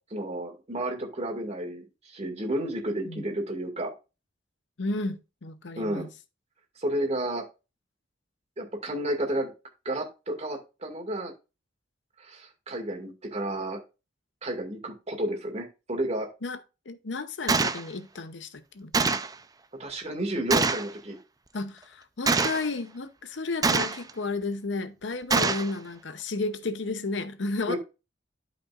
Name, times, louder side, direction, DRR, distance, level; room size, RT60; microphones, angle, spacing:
voice 1, 0.1-3.9 5.8-6.1 6.8-7.4 8.6-9.5 9.9-11.3 12.2-13.8 14.4-16.3 19.8-21.2 27.7-27.8, right 1 dB, 35° right, 2.1 m, -31 dB
voice 2, 4.8-6.1 16.4-16.6 16.9-19.2 21.5-27.8, left 3 dB, 70° left, 0.8 m, -33 dB
Gunshot gunfire, 17.5-17.8 18.9-19.3 20.5-20.9 22.3-22.7 23.6-24.1 25.3-25.7, right 4 dB, 20° right, 0.5 m, -24 dB
12.0 x 5.2 x 2.5 m
head